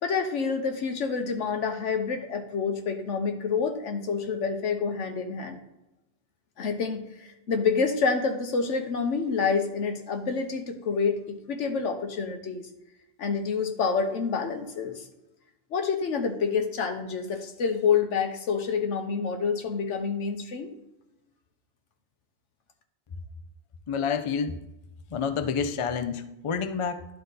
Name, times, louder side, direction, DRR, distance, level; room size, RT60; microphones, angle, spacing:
voice 1, 0.0-5.6 6.6-12.6 13.2-15.0 15.7-20.7, left 5 dB, 80° left, 5 dB, 1.3 m, -28 dB
voice 2, 23.9-24.6 25.1-27.1, left 6 dB, 45° left, 9 dB, 0.4 m, -28 dB
11.0 x 3.9 x 3.9 m, 0.94 s
omnidirectional pair, 1.2 m